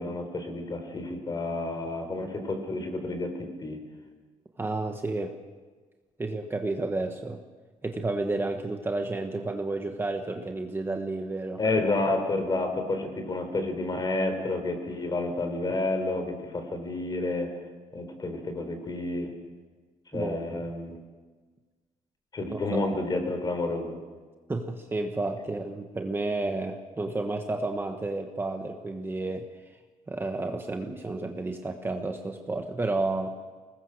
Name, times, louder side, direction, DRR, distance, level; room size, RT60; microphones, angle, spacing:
voice 1, 0.0-3.8 11.6-17.5 17.9-19.3 20.1-21.0 22.3-24.0, left 2 dB, 30° left, 6 dB, 4.0 m, -30 dB
voice 2, 4.6-5.3 6.2-7.4 7.8-11.6 20.1-20.6 22.5-22.8 24.5-29.8 30.1-33.4, right 2 dB, 15° right, 4 dB, 1.2 m, -31 dB
23.0 x 20.0 x 6.5 m, 1.4 s
cardioid pair, 150°, 14 cm